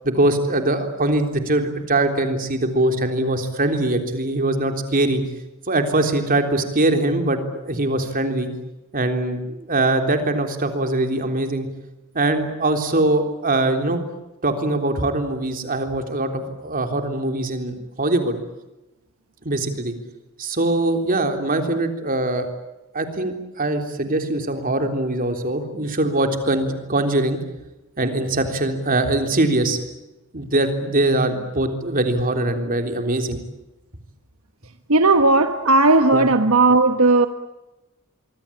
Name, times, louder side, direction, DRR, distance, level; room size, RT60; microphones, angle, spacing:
voice 1, 0.0-5.2 5.7-8.5 8.9-11.7 12.1-14.0 14.4-18.4 19.4-19.9 20.4-22.5 22.9-27.4 28.0-29.8 30.3-33.4 36.1-36.3, right 2 dB, 40° right, 6 dB, 3.6 m, -22 dB
voice 2, 34.9-37.3, right 2 dB, 75° right, 8 dB, 1.3 m, -15 dB
26.0 x 23.5 x 8.7 m, 1.0 s
head